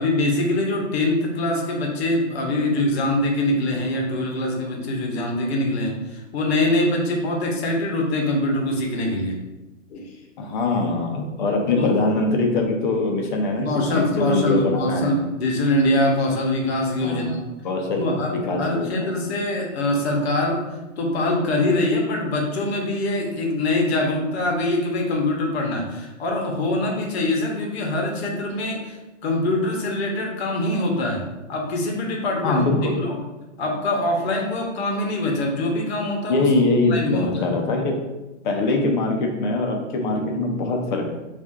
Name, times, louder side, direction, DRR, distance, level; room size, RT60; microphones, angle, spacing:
voice 1, 0.0-9.4 9.9-10.1 11.7-11.9 13.6-17.4 17.9-20.6 21.0-32.7 33.0-33.2 33.6-36.5 36.9-37.3, left 1 dB, 55° left, 1 dB, 0.9 m, -23 dB
voice 2, 10.4-15.1 17.0-17.4 17.6-19.2 32.4-33.0 36.3-38.0 38.4-41.1, left 2 dB, 40° left, 2 dB, 0.5 m, -23 dB
4.1 x 2.4 x 2.4 m, 1.1 s
hypercardioid pair, 150°, 39 cm